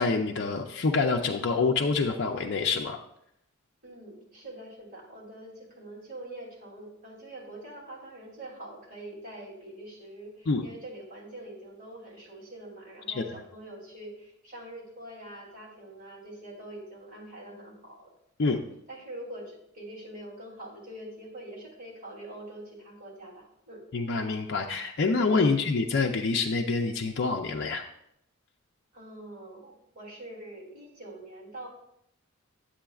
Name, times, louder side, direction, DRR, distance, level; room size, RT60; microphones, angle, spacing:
voice 1, 0.0-3.0 10.5-10.6 13.2-13.3 18.4-18.6 23.9-27.8, left 4 dB, 55° left, 1 dB, 0.5 m, -26 dB
voice 2, 3.8-18.1 18.5-23.8 25.4-25.6 28.9-31.7, right 1 dB, 45° right, -4 dB, 2.7 m, -44 dB
10.0 x 7.6 x 2.4 m, 0.76 s
head